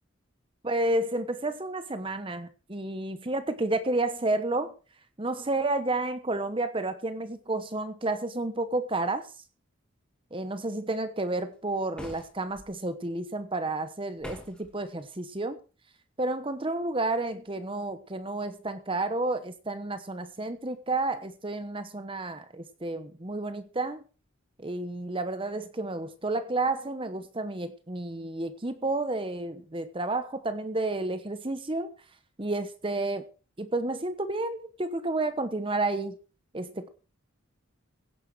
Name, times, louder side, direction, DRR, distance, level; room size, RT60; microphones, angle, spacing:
voice 1, 0.6-4.7 5.2-9.3 10.3-15.6 16.2-24.0 24.6-31.9 32.4-33.3 33.6-36.2 36.5-36.9, right 2 dB, 25° right, 11 dB, 1.0 m, -31 dB
sound 1, 11.9-12.7 14.2-14.7, equal, 5° left, 2.8 m, -43 dB
16.5 x 10.0 x 4.7 m, 0.35 s
head